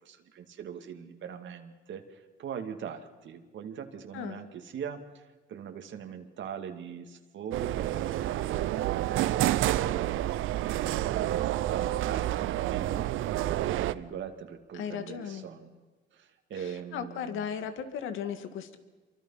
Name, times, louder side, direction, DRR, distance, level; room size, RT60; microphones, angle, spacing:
voice 1, 0.0-8.6 9.1-10.2 10.7-12.3 12.7-15.8 16.1-17.5, right 8 dB, 70° right, 5 dB, 2.3 m, -41 dB
sound 1, 7.5-13.9, right 14 dB, 85° right, 0.7 m, -29 dB
voice 2, 14.7-15.4 16.5-18.8, left 8 dB, 90° left, 9 dB, 2.0 m, -36 dB
27.0 x 24.0 x 5.7 m, 1.3 s
cardioid pair, 90°, 20 cm